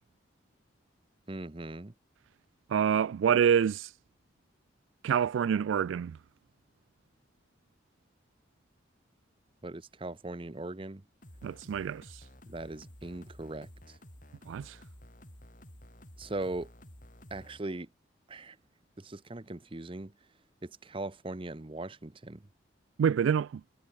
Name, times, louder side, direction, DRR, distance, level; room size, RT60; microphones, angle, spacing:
voice 1, 1.3-1.9 9.6-11.0 12.5-14.0 16.2-16.7 17.3-17.9 18.3-18.6 19.0-20.1 20.6-22.4, right 2 dB, 25° right, 0.8 m, -39 dB
voice 2, 2.7-3.9 5.0-6.2 11.4-12.2 14.5-14.8 23.0-23.6, right 8 dB, 85° right, 0.3 m, -27 dB
sound 1, 11.2-17.6, left 1 dB, 45° left, 5.6 m, -52 dB
head